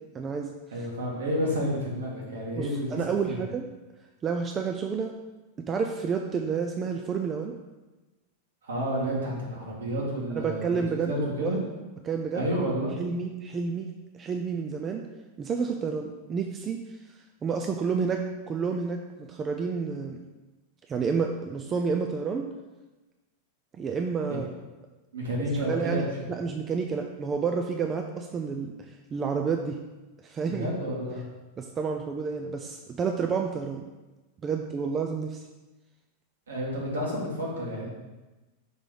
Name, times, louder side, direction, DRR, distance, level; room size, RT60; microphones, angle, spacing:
voice 1, 0.1-0.5 2.6-3.6 4.2-5.1 5.7-7.5 10.4-11.1 11.4-11.6 12.0-12.5 13.0-13.9 14.2-15.0 15.4-16.8 17.4-20.2 20.9-22.4 23.7-24.5 25.7-28.7 29.1-29.8 30.2-30.7 31.6-33.8 34.4-35.4, right 5 dB, 25° right, 3 dB, 0.4 m, -29 dB
voice 2, 0.7-3.0 3.3-3.4 8.6-10.8 11.0-11.6 12.3-12.9 25.1-26.1 30.4-31.2 36.5-37.9, equal, 70° right, -3 dB, 1.7 m, -30 dB
5.6 x 3.8 x 4.9 m, 1.1 s
figure-of-eight pair, 90°, 0 cm